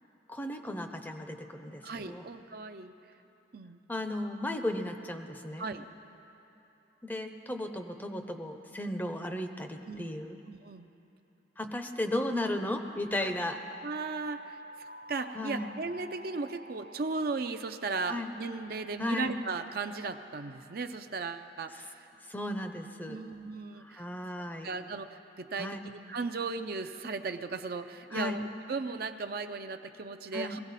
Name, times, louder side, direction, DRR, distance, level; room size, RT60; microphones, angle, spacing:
voice 1, 0.3-2.3 3.9-5.7 7.0-10.4 11.6-13.6 15.3-15.7 18.1-18.3 19.0-19.3 22.3-23.2 23.8-24.7 25.6-25.8 28.1-28.4 30.3-30.6, left 1 dB, 10° left, 6 dB, 0.6 m, -35 dB
voice 2, 1.8-2.9 3.5-3.8 5.6-5.8 9.8-10.2 10.5-10.9 13.2-13.3 13.8-14.6 15.1-22.1 23.1-24.0 24.6-30.6, right 4 dB, 55° right, 7 dB, 0.5 m, -36 dB
sound 1, 13.1-18.6, right 1 dB, 85° left, 2.9 m, -50 dB
21.5 x 16.5 x 4.1 m, 3.0 s
head